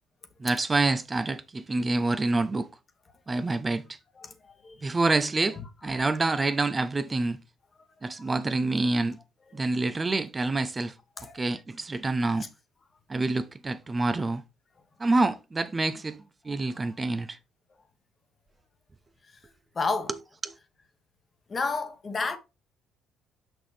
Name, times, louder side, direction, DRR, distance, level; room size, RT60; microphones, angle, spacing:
voice 1, 0.4-2.7 3.3-4.0 4.8-7.4 8.0-9.2 9.5-10.9 11.3-12.4 13.1-14.4 15.0-16.2 16.4-17.4 20.4-20.5, right 3 dB, 25° right, 0.5 m, -27 dB
voice 2, 4.2-4.8 5.9-6.1 8.1-8.2 11.2-11.4 16.7-16.9 19.7-20.1 21.5-22.4, left 4 dB, 35° left, 1.3 m, -31 dB
6.0 x 5.9 x 3.4 m
supercardioid pair, 70°, 0 cm